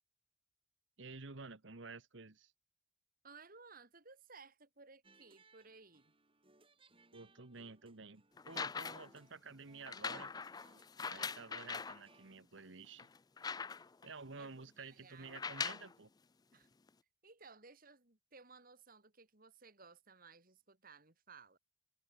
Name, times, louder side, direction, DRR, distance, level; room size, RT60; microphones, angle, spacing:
voice 1, 1.0-2.5 7.1-10.3 11.0-13.1 14.0-16.1, right 4 dB, 70° right, 1.4 m, -51 dB
voice 2, 3.2-6.1 14.4-15.3 16.5-16.7 17.2-21.6, right 4 dB, 45° right, 3.3 m, -59 dB
sound 1, 5.0-12.4, right 2 dB, 30° right, 7.6 m, -68 dB
sound 2, 8.4-9.2 9.9-12.0 12.6-12.7 13.0-14.1 15.2-15.9 16.9-17.0, left 5 dB, 20° left, 0.4 m, -42 dB
head